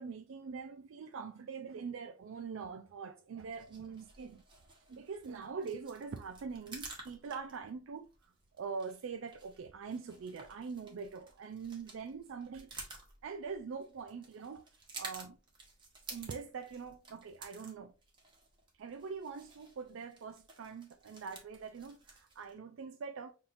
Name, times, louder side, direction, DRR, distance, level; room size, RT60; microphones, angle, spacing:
voice 1, 0.0-4.4 4.9-12.7 13.2-14.6 14.9-15.4 16.1-17.9 18.8-23.3, right 5 dB, 80° right, 0.4 m, -43 dB
sound 1, 3.4-22.5, right 3 dB, 25° right, 0.9 m, -53 dB
5.6 x 2.7 x 2.6 m
head